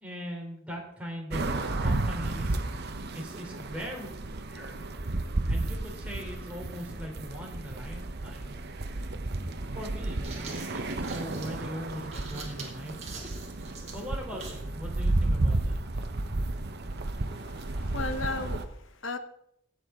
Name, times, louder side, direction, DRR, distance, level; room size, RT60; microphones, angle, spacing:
voice 1, 0.0-1.4 1.7-2.6 3.1-4.1 4.5-4.8 5.5-8.5 9.7-13.3 13.9-15.8, equal, 5° right, -2 dB, 3.4 m, -40 dB
sound 1, 1.3-18.6, right 2 dB, 55° right, 0.9 m, -32 dB
sound 2, 10.1-14.7, right 4 dB, 35° right, 2.5 m, -45 dB
voice 2, 17.3-19.2, left 3 dB, 70° left, 9 dB, 1.1 m, -36 dB
16.0 x 8.6 x 3.8 m, 0.76 s
head